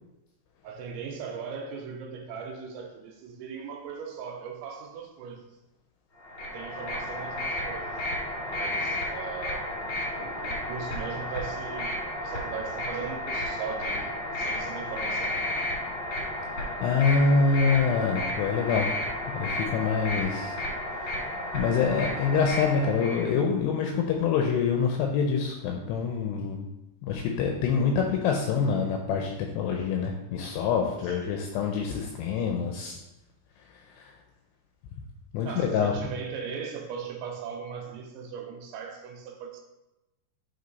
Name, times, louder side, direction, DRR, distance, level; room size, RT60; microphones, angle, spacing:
voice 1, 0.6-5.4 6.4-8.0 8.5-9.7 10.2-15.4 31.0-31.2 35.5-39.6, right 6 dB, 85° right, 3 dB, 3.0 m, -39 dB
sound 1, 6.2-23.3, left 1 dB, 50° left, 1.5 m, -32 dB
voice 2, 16.8-18.9 19.3-20.6 21.0-21.3 21.5-26.7 27.0-33.0 33.9-34.1 35.3-35.9, left 5 dB, 80° left, 2 dB, 2.5 m, -26 dB
8.4 x 3.8 x 4.0 m, 0.98 s
omnidirectional pair, 5.4 m